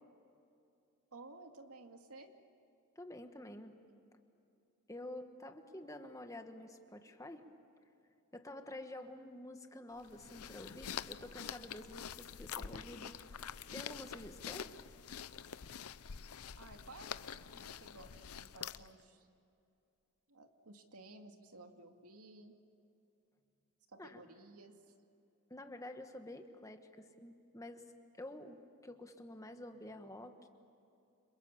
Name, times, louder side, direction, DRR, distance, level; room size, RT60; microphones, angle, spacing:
voice 1, 1.1-2.3 16.6-19.3 20.3-22.5 23.9-24.9, right 2 dB, 90° right, 4 dB, 2.3 m, -55 dB
voice 2, 2.9-3.7 4.9-7.5 8.3-14.7 24.0-24.2 25.5-27.9 28.2-30.5, left 1 dB, 15° left, 6 dB, 1.4 m, -49 dB
sound 1, 10.0-19.0, left 8 dB, 85° left, 0.7 m, -46 dB
30.0 x 27.0 x 7.3 m, 2.6 s
head